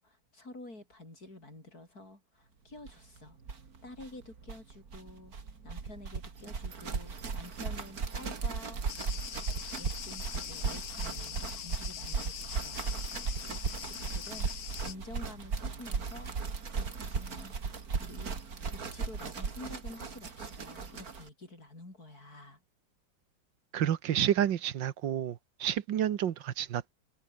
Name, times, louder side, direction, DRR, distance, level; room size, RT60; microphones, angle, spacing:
voice 1, 0.0-3.4 3.8-5.4 5.6-8.8 9.5-12.8 13.1-16.3 16.7-17.6 18.0-18.4 18.9-22.6, left 2 dB, 55° left, 7.5 m, -49 dB
sound 1, 2.9-3.0 3.2-3.3 3.4-21.3, right 5 dB, 55° right, 2.8 m, -37 dB
Cricket, 8.9-14.9, left 10 dB, 75° left, 1.8 m, -42 dB
voice 2, 23.7-26.9, right 10 dB, 90° right, 1.8 m, -30 dB
omnidirectional pair, 1.9 m